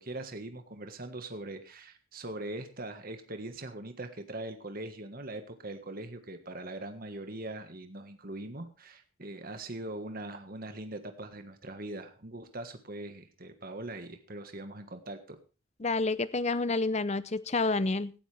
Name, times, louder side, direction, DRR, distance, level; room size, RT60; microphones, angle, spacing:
voice 1, 0.0-15.4, right 2 dB, 40° right, 7 dB, 1.5 m, -41 dB
voice 2, 15.8-18.1, left 3 dB, 30° left, 16 dB, 0.6 m, -29 dB
17.0 x 12.5 x 3.4 m, 0.33 s
head